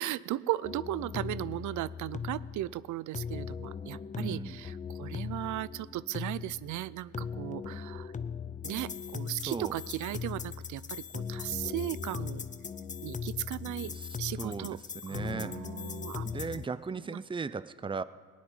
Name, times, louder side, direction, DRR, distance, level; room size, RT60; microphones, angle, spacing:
voice 1, 0.0-8.1 8.6-12.5 13.0-14.8 15.1-16.3 16.9-17.2, right 15 dB, 75° right, 19 dB, 0.5 m, -36 dB
sound 1, 0.6-16.6, left 6 dB, 25° left, 0.6 m, -39 dB
voice 2, 4.2-4.6 9.5-9.7 14.0-14.1 14.4-14.8 15.0-15.5 16.2-18.0, right 5 dB, 15° right, 15 dB, 0.5 m, -37 dB
18.0 x 6.4 x 9.7 m, 1.5 s
cardioid pair, 90°, 30 cm